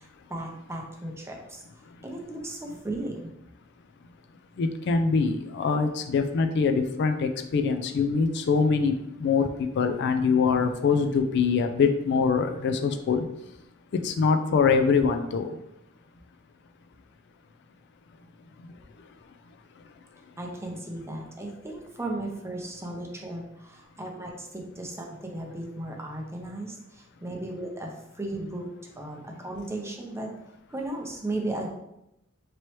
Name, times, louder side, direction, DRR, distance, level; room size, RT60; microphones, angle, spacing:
voice 1, 0.0-1.6 2.0-3.3 20.4-30.3 30.7-31.7, right 1 dB, 15° right, 0 dB, 0.6 m, -36 dB
voice 2, 4.6-13.3 13.9-15.6 18.6-19.1 19.8-19.9, left 5 dB, 55° left, 6 dB, 0.3 m, -24 dB
4.4 x 3.0 x 3.0 m, 0.84 s
head